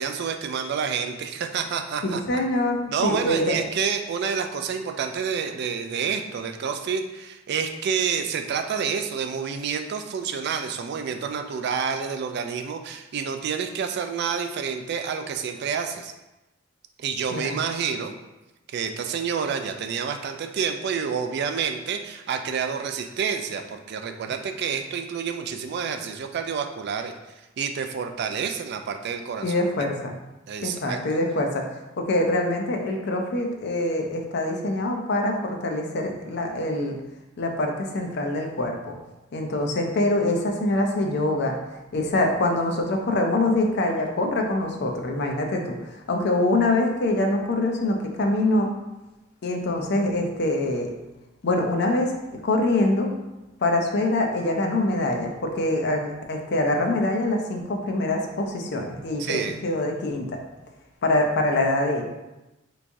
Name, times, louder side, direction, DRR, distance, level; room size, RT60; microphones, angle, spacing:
voice 1, 0.0-2.2 2.9-16.1 17.0-18.1 18.7-29.6 30.5-31.0 59.2-59.6, right 6 dB, 55° right, 6 dB, 0.3 m, -28 dB
voice 2, 2.0-3.6 17.3-17.6 29.4-30.1 30.6-31.7 32.0-36.9 37.4-38.8 39.3-41.6 41.9-48.7 49.4-50.9 51.4-52.1 52.4-53.2 53.6-60.3 61.0-62.0, left 2 dB, 60° left, 3 dB, 0.5 m, -24 dB
3.4 x 3.1 x 2.6 m, 1.0 s
head